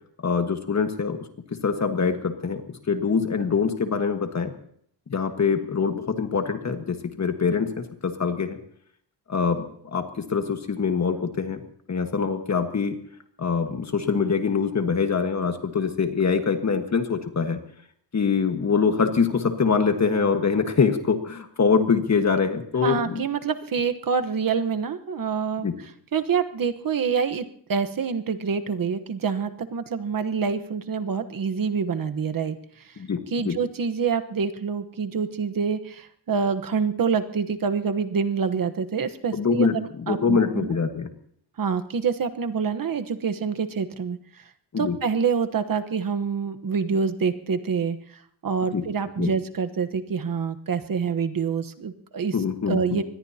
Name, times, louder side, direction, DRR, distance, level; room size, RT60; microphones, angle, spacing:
voice 1, 0.2-1.2 1.6-2.6 2.9-4.5 5.1-8.6 9.3-9.7 9.9-11.6 11.9-13.0 13.4-17.6 18.1-23.2 25.6-25.7 33.0-33.6 39.3-41.1 44.7-45.0 48.7-48.8 49.2-49.3 52.3-53.0, left 5 dB, 40° left, 5 dB, 1.5 m, -24 dB
voice 2, 22.8-25.7 26.1-27.4 27.7-32.6 32.8-32.9 33.3-40.8 41.6-44.2 44.8-48.0 48.4-52.3 52.7-53.0, right 6 dB, 55° right, 8 dB, 1.2 m, -26 dB
24.5 x 20.5 x 2.9 m, 0.65 s
wide cardioid pair, 155°, 40 cm